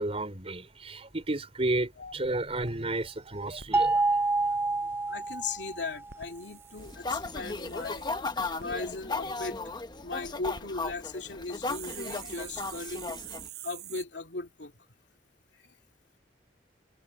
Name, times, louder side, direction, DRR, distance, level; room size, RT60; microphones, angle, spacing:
voice 1, 0.0-4.0, right 2 dB, 35° right, 4.1 m, -32 dB
sound 1, 1.5-1.6 2.0-2.1 2.3-2.4 2.6-3.7 5.9-8.1 8.6-8.8 10.2-10.6 11.6-14.0, right 10 dB, 65° right, 7.1 m, -46 dB
sound 2, 3.7-6.0, right 3 dB, 15° right, 0.7 m, -27 dB
voice 2, 5.1-8.2 8.6-9.6 10.0-13.2 13.6-14.7 15.6-15.7, left 3 dB, 85° left, 2.6 m, -38 dB
sound 3, 6.8-13.5, left 3 dB, 25° left, 1.0 m, -36 dB
head